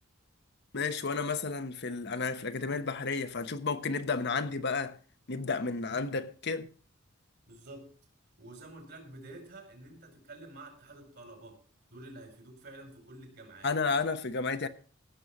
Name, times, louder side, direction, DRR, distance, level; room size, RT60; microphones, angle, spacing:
voice 1, 0.7-5.0 5.3-6.7 13.6-14.7, left 4 dB, 55° left, 1.0 m, -32 dB
voice 2, 7.5-7.9 8.4-11.6 11.9-13.7, right 2 dB, 55° right, 4.5 m, -49 dB
15.5 x 7.0 x 5.9 m
head